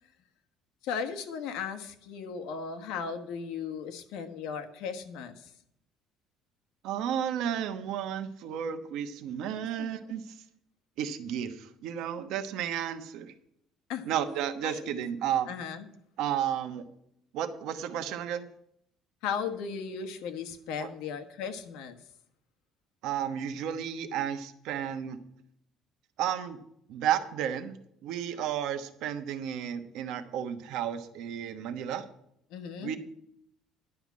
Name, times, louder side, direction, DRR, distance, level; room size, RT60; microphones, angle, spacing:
voice 1, 0.8-5.3 9.8-9.9 13.9-14.0 14.6-15.0 15.5-15.9 19.2-22.0 32.5-32.9, left 6 dB, 85° left, 7 dB, 1.4 m, -36 dB
voice 2, 6.8-10.2 11.0-13.3 14.0-15.5 16.2-16.8 17.3-18.5 20.8-20.9 23.0-25.2 26.2-26.6 26.9-27.8 28.0-32.0 32.8-33.0, right 9 dB, 70° right, 9 dB, 1.1 m, -32 dB
11.0 x 5.8 x 8.3 m, 0.73 s
cardioid pair, 165°, 0 cm